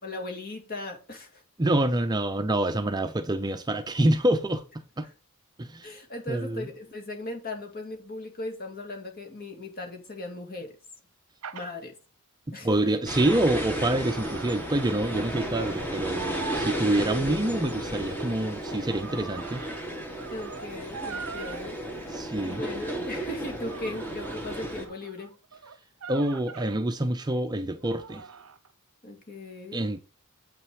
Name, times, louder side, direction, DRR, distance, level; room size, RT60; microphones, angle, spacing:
voice 1, 0.0-1.4 5.8-10.7 11.5-11.9 12.5-12.9 20.3-22.2 22.5-25.4 29.0-30.0, left 2 dB, 40° left, 2.4 m, -38 dB
voice 2, 1.6-4.6 5.0-5.1 5.6-6.0 6.3-6.7 12.6-19.6 22.1-22.6 26.1-28.3 29.7-30.0, right 1 dB, 20° right, 0.5 m, -26 dB
sound 1, 11.4-11.7 13.3-15.3 15.6-15.9 16.1-16.8 17.6-21.7 22.5-22.6 23.7-26.8 27.8-28.7, right 6 dB, 70° right, 0.8 m, -42 dB
sound 2, 13.1-24.9, right 1 dB, 10° left, 2.0 m, -34 dB
8.3 x 5.9 x 4.8 m
head